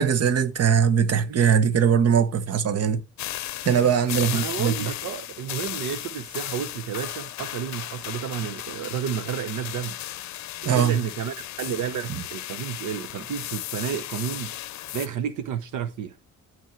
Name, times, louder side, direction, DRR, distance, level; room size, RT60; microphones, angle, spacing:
voice 1, 0.0-3.0 3.6-4.9 10.6-11.0 12.1-12.2, right 7 dB, 55° right, 1.1 m, -21 dB
sound 1, 3.2-15.1, left 14 dB, 65° left, 0.6 m, -35 dB
voice 2, 4.2-10.0 10.6-14.5 14.9-16.2, right 8 dB, 75° right, 0.9 m, -31 dB
12.0 x 4.6 x 4.5 m
cardioid pair, 90°, 30 cm